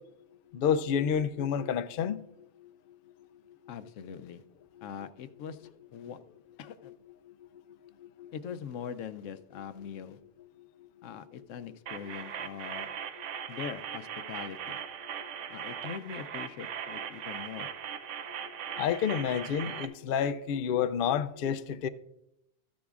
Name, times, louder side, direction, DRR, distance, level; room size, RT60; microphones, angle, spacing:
voice 1, 0.5-2.2 8.2-8.3 18.8-21.9, left 8 dB, 60° left, 0.6 m, -29 dB
voice 2, 3.7-4.4 4.8-6.2 6.6-6.9 8.3-10.2 11.0-12.9 13.5-14.8 15.5-17.7, left 8 dB, 85° left, 0.9 m, -42 dB
sound 1, 11.9-19.9, right 8 dB, 75° right, 1.0 m, -39 dB
14.0 x 10.0 x 2.4 m
omnidirectional pair, 1.3 m